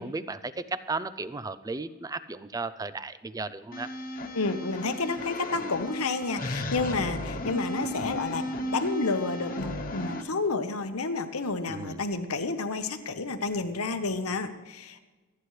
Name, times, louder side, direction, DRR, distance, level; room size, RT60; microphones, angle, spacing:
voice 1, 0.0-3.9 11.7-12.0, right 3 dB, 15° right, 14 dB, 0.4 m, -35 dB
sound 1, 3.7-10.2, left 1 dB, 40° left, 1.3 m, -34 dB
voice 2, 4.3-15.0, left 3 dB, 90° left, 8 dB, 1.1 m, -30 dB
25.0 x 9.8 x 3.3 m, 1.3 s
head